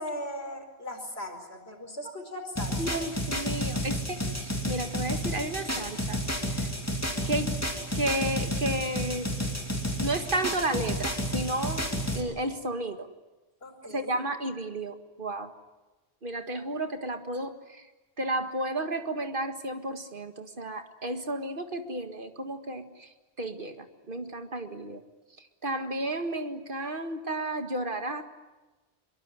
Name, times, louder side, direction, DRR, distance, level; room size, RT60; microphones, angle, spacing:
voice 1, 0.0-2.8 13.6-14.2, left 1 dB, 65° left, 5 dB, 5.1 m, -38 dB
sound 1, 2.6-12.2, equal, 15° left, 3.0 m, -31 dB
voice 2, 2.8-6.2 6.5-6.7 7.3-7.6 7.9-9.3 10.0-13.1 13.8-15.5 16.2-17.9 18.2-23.1 23.4-25.0 25.4-28.2, right 1 dB, 50° right, 7 dB, 2.0 m, -32 dB
24.5 x 23.5 x 9.7 m, 1.2 s
omnidirectional pair, 1.1 m